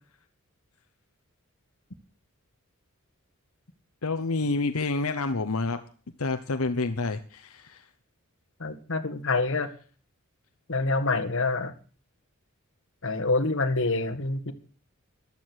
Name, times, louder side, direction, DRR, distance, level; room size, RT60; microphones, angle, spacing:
voice 1, 4.0-5.8 6.2-7.8, left 3 dB, 85° left, 8 dB, 1.0 m, -28 dB
voice 2, 8.6-9.7 10.7-11.7 13.0-14.5, left 3 dB, 60° left, 7 dB, 1.8 m, -26 dB
14.0 x 12.0 x 6.3 m, 0.41 s
head